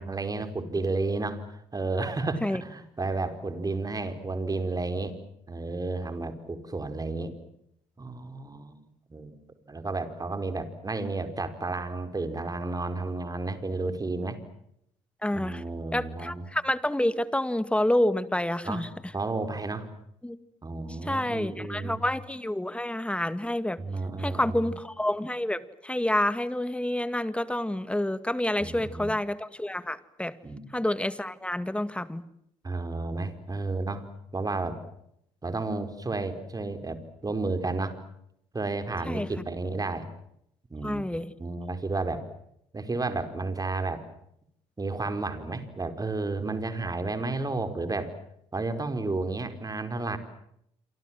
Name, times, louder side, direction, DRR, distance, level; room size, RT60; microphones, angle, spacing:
voice 1, 0.0-5.2 5.5-7.3 8.0-8.8 9.1-9.4 9.7-14.4 15.3-16.4 18.6-18.9 19.1-19.9 20.6-22.0 23.8-24.7 28.6-29.1 30.4-30.7 32.6-34.1 34.3-34.8 35.4-38.0 38.5-40.1 40.7-41.0 41.4-42.2 42.7-44.0 44.8-48.1 48.5-50.2, right 3 dB, 25° right, 9 dB, 4.8 m, -32 dB
voice 2, 15.2-15.6 15.9-18.9 20.2-20.4 21.0-23.8 24.2-30.3 30.7-32.2 39.1-39.3 40.8-41.3, left 1 dB, 5° left, 14 dB, 2.0 m, -28 dB
27.5 x 25.5 x 7.7 m, 0.76 s
hypercardioid pair, 60°, 15 cm